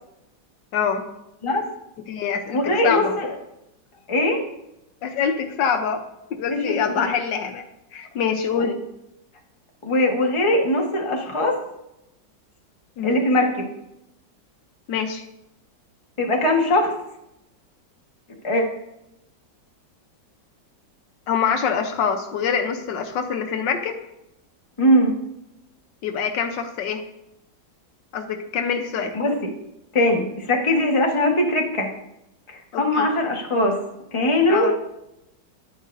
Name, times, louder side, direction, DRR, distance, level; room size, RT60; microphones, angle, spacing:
voice 1, 0.7-1.0 2.1-3.1 5.0-6.0 6.3-7.6 7.9-8.8 13.0-13.2 14.9-15.3 21.3-24.0 26.0-27.0 28.1-29.2 32.7-33.1 34.5-34.8, left 6 dB, 80° left, 6 dB, 1.5 m, -25 dB
voice 2, 2.5-3.3 4.1-4.4 6.5-7.1 8.6-8.7 9.8-11.6 13.0-13.7 16.2-16.9 18.4-18.6 24.8-25.1 29.1-29.5 29.9-31.9 32.5-33.8 34.1-34.7, left 1 dB, 20° left, 1 dB, 1.2 m, -21 dB
10.0 x 10.0 x 2.6 m, 0.86 s
omnidirectional pair, 1.9 m